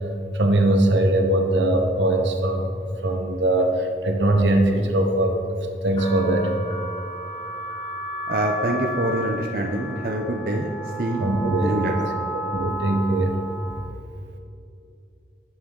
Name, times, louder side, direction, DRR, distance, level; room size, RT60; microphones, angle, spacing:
voice 1, 0.3-2.6 3.0-5.3 5.8-6.5 11.2-11.8 12.3-13.4, right 1 dB, 85° right, 3 dB, 1.1 m, -21 dB
sound 1, 6.0-13.9, right 1 dB, 25° left, 0.9 m, -33 dB
voice 2, 8.3-10.7 11.0-11.3 11.6-11.9, right 1 dB, 50° right, 1 dB, 0.6 m, -25 dB
10.0 x 7.3 x 3.8 m, 2.6 s
head